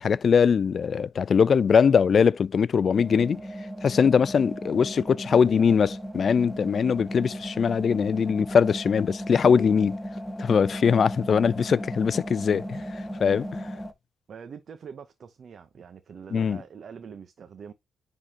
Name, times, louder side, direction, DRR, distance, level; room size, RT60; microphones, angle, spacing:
voice 1, 0.0-3.4 3.8-10.0 10.4-12.8 13.2-13.7 16.3-16.6, left 6 dB, 55° left, 0.3 m, -21 dB
sound 1, 2.9-13.9, equal, 5° right, 1.8 m, -36 dB
voice 2, 14.3-17.7, right 6 dB, 60° right, 0.8 m, -44 dB
9.7 x 3.8 x 2.9 m
supercardioid pair, 55°, 0 cm